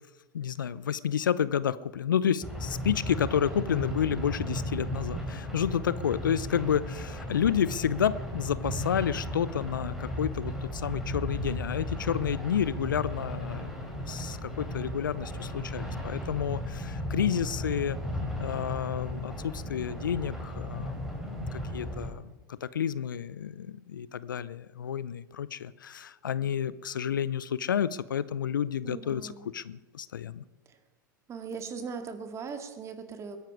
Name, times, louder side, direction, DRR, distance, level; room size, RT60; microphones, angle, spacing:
voice 1, 0.3-13.8 14.0-18.0 18.4-21.0 21.2-30.4, left 8 dB, 75° left, 18 dB, 0.6 m, -30 dB
sound 1, 2.4-22.1, left 1 dB, 5° right, 4.1 m, -35 dB
voice 2, 28.8-29.5 31.3-33.4, right 5 dB, 25° right, 7 dB, 2.1 m, -39 dB
21.5 x 10.5 x 4.8 m, 1.2 s
figure-of-eight pair, 90°, 11 cm